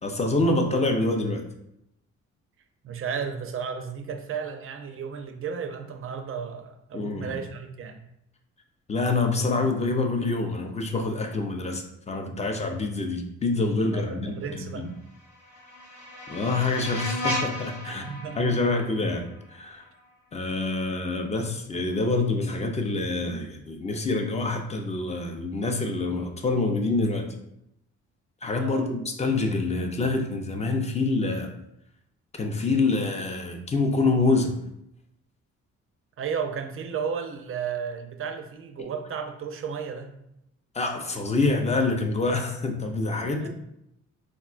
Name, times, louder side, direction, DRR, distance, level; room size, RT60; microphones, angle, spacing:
voice 1, 0.0-1.4 6.9-7.4 8.9-14.9 16.3-18.1 18.4-19.8 20.3-27.3 28.4-31.5 32.4-34.6 38.8-38.9 40.7-43.5, left 3 dB, 25° left, 4 dB, 0.4 m, -26 dB
voice 2, 2.8-8.0 13.9-14.9 17.8-18.6 28.6-28.9 36.2-40.1 43.4-43.5, right 6 dB, 45° right, 6 dB, 0.5 m, -33 dB
The One Who Knocks Swell, 15.0-20.0, left 1 dB, 80° left, 1.0 m, -35 dB
3.6 x 2.2 x 2.4 m, 0.80 s
cardioid pair, 90°, 30 cm